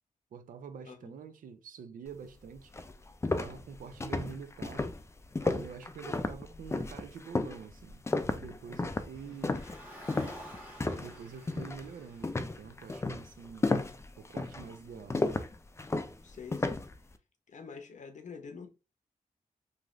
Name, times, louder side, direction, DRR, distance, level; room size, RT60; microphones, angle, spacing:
voice 1, 0.3-2.7 3.4-4.9 5.4-8.0 8.4-9.6 11.0-13.7 14.2-15.5, right 6 dB, 85° right, 0.4 m, -46 dB
sound 1, 2.2-2.3 2.7-11.2 11.5-11.9 12.2-16.9, left 2 dB, 20° left, 0.4 m, -33 dB
Car, 9.1-13.5, equal, 10° right, 1.4 m, -51 dB
voice 2, 16.2-16.8 17.5-18.7, left 5 dB, 65° left, 0.6 m, -46 dB
3.1 x 2.4 x 2.4 m
cardioid pair, 60°, 14 cm